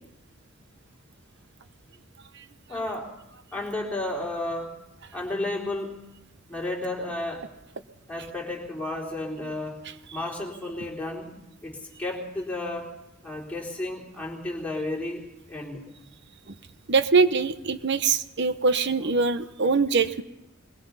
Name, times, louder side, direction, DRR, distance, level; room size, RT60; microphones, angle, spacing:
voice 1, 2.7-3.1 3.5-4.8 5.1-6.0 6.5-7.5 8.1-9.8 10.1-12.9 13.2-15.2 15.5-15.8, left 2 dB, 5° left, -3 dB, 3.8 m, -32 dB
voice 2, 16.9-20.2, right 4 dB, 60° right, 12 dB, 1.0 m, -23 dB
22.0 x 21.0 x 5.7 m, 0.92 s
head